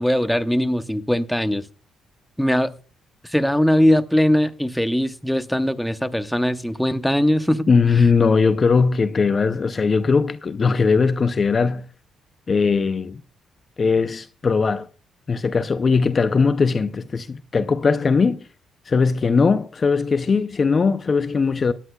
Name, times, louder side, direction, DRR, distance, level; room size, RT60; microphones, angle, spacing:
voice 1, 0.0-1.6 2.4-2.7 3.3-7.7, equal, ahead, 0.8 m, -20 dB
voice 2, 7.7-11.8 12.5-13.2 13.8-14.9 15.3-18.4 18.9-21.7, left 5 dB, 40° left, 0.5 m, -19 dB
17.5 x 10.0 x 2.3 m
cardioid pair, 90°, 0 cm